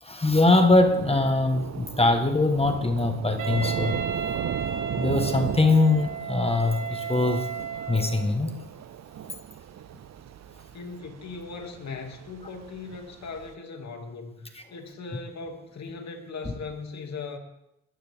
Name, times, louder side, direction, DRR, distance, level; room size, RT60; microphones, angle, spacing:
voice 1, 0.0-4.0 4.9-7.5 7.9-8.5, left 2 dB, 20° left, 1.5 m, -22 dB
Thunder / Rain, 0.7-13.5, right 10 dB, 60° right, 0.7 m, -36 dB
Wind instrument woodwind instrument, 3.4-8.4, right 6 dB, 80° right, 1.9 m, -34 dB
voice 2, 10.7-17.4, left 4 dB, 65° left, 2.6 m, -39 dB
20.0 x 14.0 x 3.7 m
cardioid pair, 80°, 30 cm